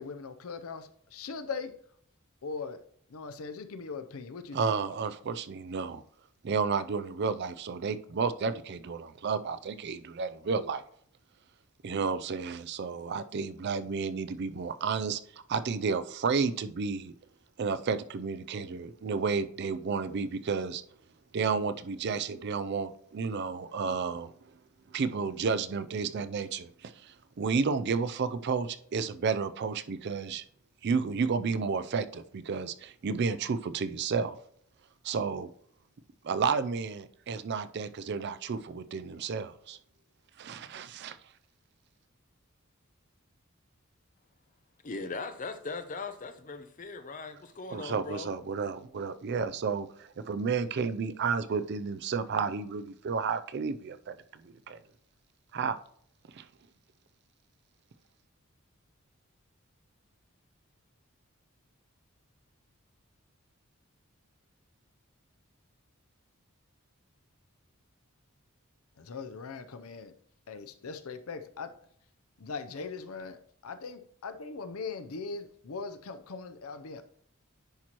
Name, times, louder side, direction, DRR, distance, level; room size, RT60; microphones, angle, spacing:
voice 1, 0.0-1.7 2.4-2.8 3.1-4.7 69.0-70.1 70.5-71.7 72.4-77.0, left 4 dB, 80° left, 0.6 m, -40 dB
voice 2, 4.5-6.0 6.4-10.8 11.8-15.2 15.5-17.1 17.6-20.8 21.3-24.5 24.9-30.4 30.8-34.4 35.0-35.5 36.2-39.8 40.4-41.2 47.7-54.1 54.4-54.8 55.5-55.8 56.3-56.5, right 5 dB, 50° right, 0.4 m, -31 dB
voice 3, 44.8-48.3, left 3 dB, 40° left, 0.6 m, -39 dB
10.5 x 4.4 x 2.9 m
head